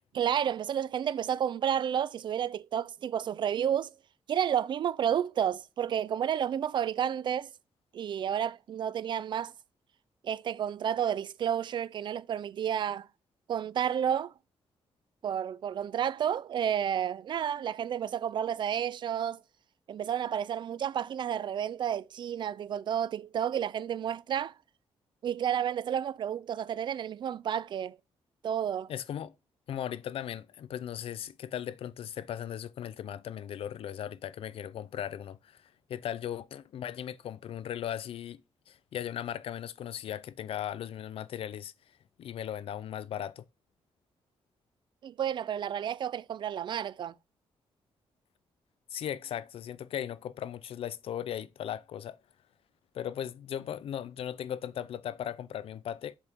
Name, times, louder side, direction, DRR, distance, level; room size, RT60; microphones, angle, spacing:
voice 1, 0.1-3.9 4.3-7.5 7.9-9.5 10.2-13.1 13.5-14.3 15.2-19.4 19.9-24.5 25.2-28.0 28.4-28.9 45.0-47.1, right 9 dB, 50° right, 0.3 m, -31 dB
voice 2, 28.9-29.3 29.7-38.4 38.7-41.7 42.2-43.4 48.9-52.2 52.9-56.1, left 10 dB, 65° left, 0.5 m, -37 dB
7.2 x 3.5 x 4.4 m
cardioid pair, 135°, 10 cm